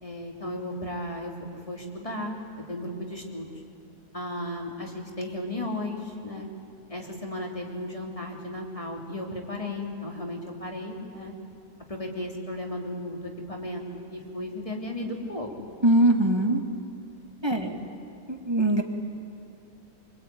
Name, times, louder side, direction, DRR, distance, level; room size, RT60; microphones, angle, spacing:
voice 1, 0.0-2.3 2.7-3.5 4.1-6.5 6.9-11.3 11.9-13.8 14.1-15.7 17.6-17.9, left 1 dB, 20° left, 0 dB, 3.3 m, -35 dB
voice 2, 15.8-16.6 17.4-17.8 18.3-18.8, right 1 dB, 15° right, 3 dB, 2.0 m, -22 dB
24.5 x 24.5 x 9.4 m, 2.5 s
omnidirectional pair, 1.7 m